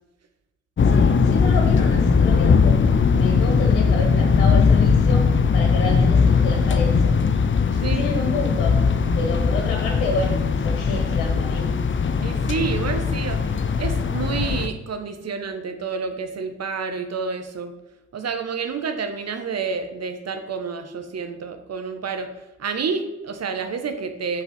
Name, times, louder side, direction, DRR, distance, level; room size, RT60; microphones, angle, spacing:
sound 1, 0.8-14.7, left 5 dB, 35° left, 0.8 m, -19 dB
voice 1, 0.9-5.2 5.5-7.1 7.9-8.8 9.1-11.7, left 2 dB, 75° left, 1 dB, 1.4 m, -29 dB
voice 2, 7.7-8.1 12.2-17.7 18.1-22.3 22.6-24.4, right 5 dB, 45° right, 8 dB, 1.2 m, -29 dB
8.0 x 4.7 x 6.0 m, 0.98 s
hypercardioid pair, 40°, 35 cm